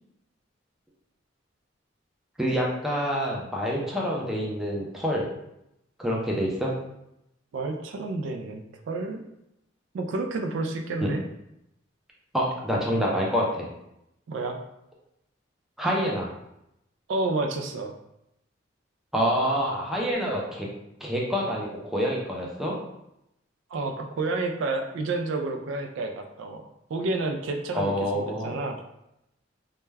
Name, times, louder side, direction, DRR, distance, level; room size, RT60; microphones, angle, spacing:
voice 1, 2.4-5.3 6.0-6.7 11.0-11.1 12.3-13.7 15.8-16.3 19.1-20.7 21.0-22.8 27.7-28.6, equal, ahead, -3 dB, 0.4 m, -27 dB
voice 2, 7.5-9.2 9.9-11.2 14.3-14.6 17.1-17.9 23.7-28.8, right 3 dB, 75° right, 5 dB, 0.3 m, -30 dB
2.2 x 2.1 x 3.2 m, 0.84 s
head